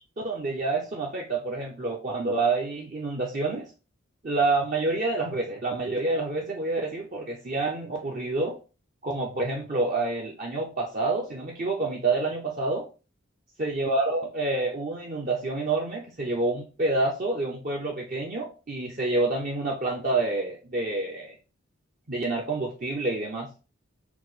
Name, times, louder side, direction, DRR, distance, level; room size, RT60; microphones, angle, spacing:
voice 1, 0.2-3.7 4.2-8.6 9.0-12.9 13.6-21.4 22.1-23.5, right 3 dB, 40° right, -1 dB, 0.6 m, -28 dB
4.6 x 2.1 x 3.9 m, 0.33 s
head